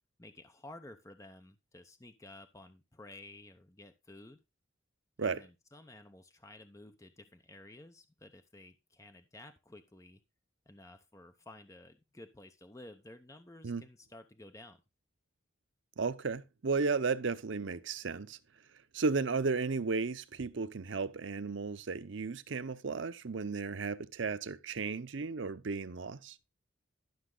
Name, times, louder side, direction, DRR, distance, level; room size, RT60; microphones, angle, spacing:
voice 1, 0.2-4.4 5.2-10.2 10.7-14.8, left 2 dB, 15° left, 0.7 m, -53 dB
voice 2, 16.0-18.4 18.9-26.4, right 4 dB, 70° right, 0.6 m, -34 dB
12.0 x 6.0 x 3.8 m
head